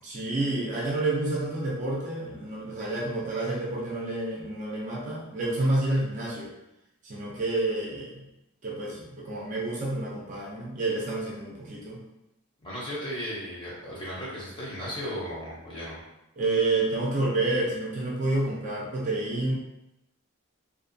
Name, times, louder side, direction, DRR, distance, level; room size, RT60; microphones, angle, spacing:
voice 1, 0.0-6.5 7.0-8.2 8.6-12.0 16.4-19.5, right 2 dB, 35° right, -4 dB, 0.4 m, -29 dB
voice 2, 12.6-16.0, equal, 20° left, -7 dB, 0.7 m, -35 dB
2.5 x 2.2 x 2.5 m, 0.91 s
head